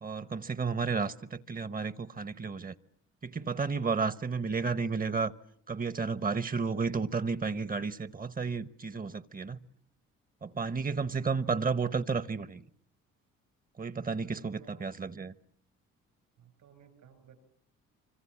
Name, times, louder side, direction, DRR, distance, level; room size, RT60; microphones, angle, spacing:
voice 1, 0.0-2.7 3.2-5.3 5.7-9.6 10.4-12.6 13.8-15.3, right 4 dB, 30° right, 1.0 m, -32 dB
voice 2, 14.3-15.1 16.4-17.4, right 7 dB, 75° right, 7.7 m, -58 dB
26.0 x 25.5 x 8.6 m
cardioid pair, 90°, 30 cm